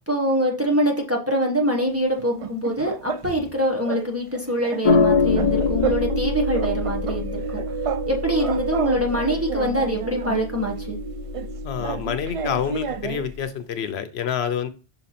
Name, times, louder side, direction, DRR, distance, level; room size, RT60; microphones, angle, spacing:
voice 1, 0.1-7.6 8.1-11.0, equal, 15° right, 0 dB, 1.1 m, -24 dB
sound 1, 2.2-3.5 3.9-4.1 4.3-6.2 6.5-8.1 8.3-10.5 11.3-13.3, right 6 dB, 60° right, 0.3 m, -31 dB
sound 2, 4.8-13.4, left 5 dB, 40° left, 0.6 m, -26 dB
sound 3, 5.1-12.4, right 7 dB, 35° right, 1.3 m, -32 dB
voice 2, 11.6-14.7, left 8 dB, 75° left, 10 dB, 0.9 m, -27 dB
5.8 x 4.1 x 4.2 m, 0.33 s
omnidirectional pair, 1.1 m